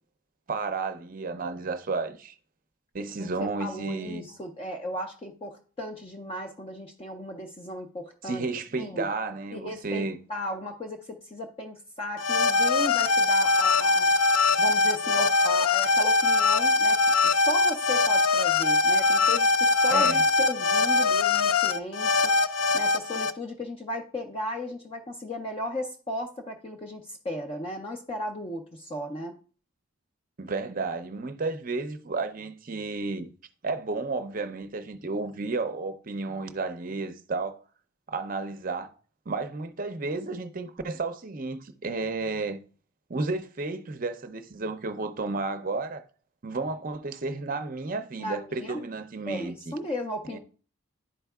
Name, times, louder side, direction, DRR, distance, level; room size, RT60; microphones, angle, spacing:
voice 1, 0.5-2.3 2.9-4.3 8.2-10.2 19.9-20.2 30.4-33.3 33.6-37.6 38.1-38.9 39.3-42.6 43.1-46.0 46.4-49.7 50.3-50.4, right 3 dB, 40° right, 0.5 m, -32 dB
voice 2, 3.2-8.4 8.8-9.1 9.5-14.1 14.6-17.0 17.2-22.3 22.7-29.4 48.2-48.8 49.2-50.4, left 1 dB, 25° left, 0.5 m, -35 dB
sound 1, 12.2-23.3, left 3 dB, 90° left, 0.4 m, -22 dB
11.0 x 4.5 x 2.3 m
head